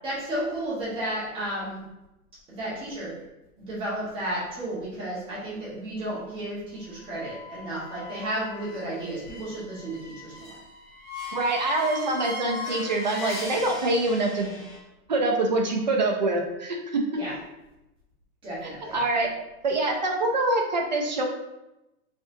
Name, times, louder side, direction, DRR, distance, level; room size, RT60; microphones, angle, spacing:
voice 1, 0.0-1.8 2.6-3.1 3.7-10.5 17.2-17.3 18.4-19.0, right 1 dB, 10° right, -8 dB, 1.4 m, -33 dB
sound 1, 7.1-14.8, left 2 dB, 10° left, 0.8 m, -39 dB
voice 2, 11.3-14.5 15.1-17.2 18.6-19.3 19.6-21.2, right 2 dB, 35° right, 2 dB, 0.4 m, -25 dB
5.7 x 3.4 x 2.7 m, 0.94 s
hypercardioid pair, 170°, 44 cm